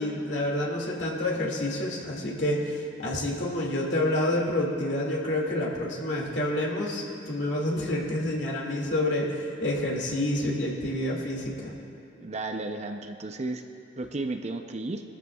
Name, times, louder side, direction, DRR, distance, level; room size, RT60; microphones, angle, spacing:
voice 1, 0.0-11.8, left 1 dB, 70° left, -2 dB, 2.3 m, -28 dB
voice 2, 12.2-13.6 13.9-15.0, right 2 dB, 35° right, 6 dB, 0.6 m, -33 dB
22.0 x 13.5 x 2.4 m, 2.9 s
head